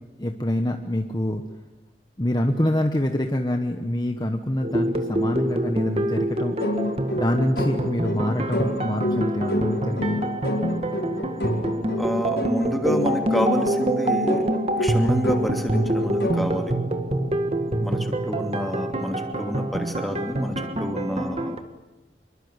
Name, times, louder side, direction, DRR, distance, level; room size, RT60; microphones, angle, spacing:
voice 1, 0.2-1.4 2.2-6.6 7.1-10.2, left 1 dB, 25° left, 5 dB, 1.2 m, -26 dB
sound 1, 4.6-21.6, right 1 dB, 35° right, 1.9 m, -26 dB
sound 2, 6.6-16.6, left 1 dB, 75° left, 5.4 m, -28 dB
voice 2, 12.0-14.5 14.8-16.8 17.8-21.6, equal, ahead, 3 dB, 2.6 m, -28 dB
26.5 x 23.0 x 8.1 m, 1.1 s
head